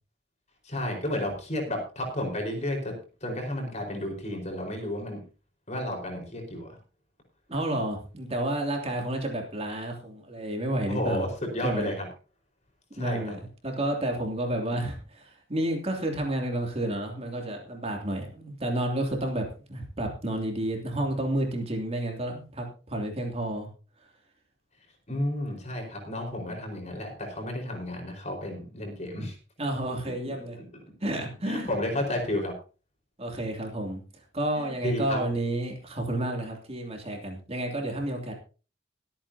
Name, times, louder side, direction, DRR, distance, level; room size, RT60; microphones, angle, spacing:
voice 1, 0.6-2.9 3.2-5.2 5.7-6.8 8.8-9.0 10.9-12.1 12.9-13.4 25.1-29.4 30.0-30.1 30.6-30.7 31.5-32.5 34.5-35.3, left 1 dB, 40° left, 2 dB, 4.7 m, -32 dB
voice 2, 7.5-11.2 11.6-11.9 13.0-13.4 13.6-23.7 29.6-30.6 31.0-31.7 33.2-34.0 34.3-38.3, right 1 dB, 35° right, 2 dB, 2.8 m, -30 dB
23.5 x 8.8 x 2.8 m, 0.35 s
head